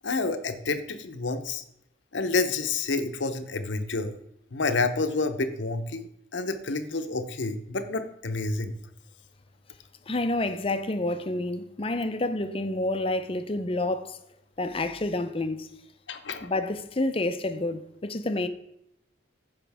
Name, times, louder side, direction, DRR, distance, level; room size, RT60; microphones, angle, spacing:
voice 1, 0.0-1.6 2.1-4.1 4.5-8.7 16.1-16.5, left 3 dB, 70° left, 0.8 m, -29 dB
voice 2, 10.1-14.2 14.6-15.7 16.4-18.5, left 2 dB, 30° left, 0.6 m, -29 dB
14.5 x 5.2 x 3.5 m
head